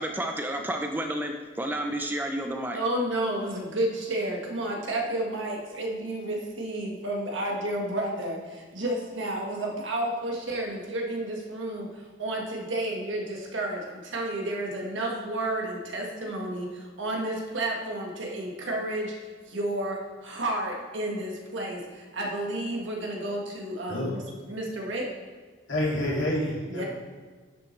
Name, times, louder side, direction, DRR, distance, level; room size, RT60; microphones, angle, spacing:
voice 1, 0.0-2.8, right 1 dB, 10° right, 4 dB, 0.4 m, -31 dB
voice 2, 2.7-8.4 8.7-24.2 24.5-25.1 26.7-26.9, right 1 dB, 75° right, -1 dB, 1.5 m, -31 dB
voice 3, 25.7-26.9, left 1 dB, 75° left, -5 dB, 2.4 m, -28 dB
10.5 x 6.2 x 3.2 m, 1.4 s
head